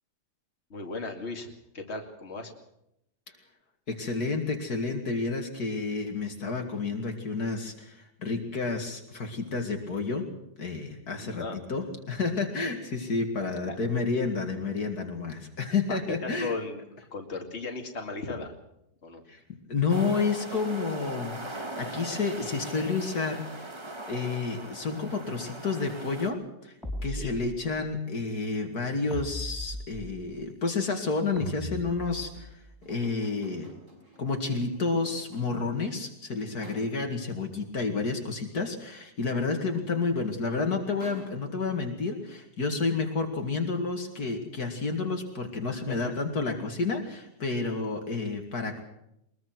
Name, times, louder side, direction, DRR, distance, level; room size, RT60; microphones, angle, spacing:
voice 1, 0.7-2.5 11.1-11.6 13.6-13.8 15.9-16.8 17.1-18.5 19.0-19.2 27.0-27.4 39.8-40.0 45.7-46.2, left 3 dB, 40° left, 3 dB, 2.8 m, -37 dB
voice 2, 3.9-10.3 10.6-11.4 11.7-16.5 19.3-23.7 24.1-26.7 27.0-32.6 32.9-33.7 34.2-48.8, left 4 dB, 65° left, 4 dB, 2.8 m, -30 dB
sound 1, 19.9-26.3, right 1 dB, 15° right, 1.6 m, -40 dB
sound 2, 26.8-27.9 29.1-30.4 31.4-32.6, equal, ahead, 5.6 m, -38 dB
sound 3, 32.8-35.8 36.6-37.3 39.9-40.0 40.3-41.9, left 1 dB, 50° right, 6.3 m, -52 dB
22.0 x 21.5 x 6.1 m, 0.80 s
omnidirectional pair, 1.8 m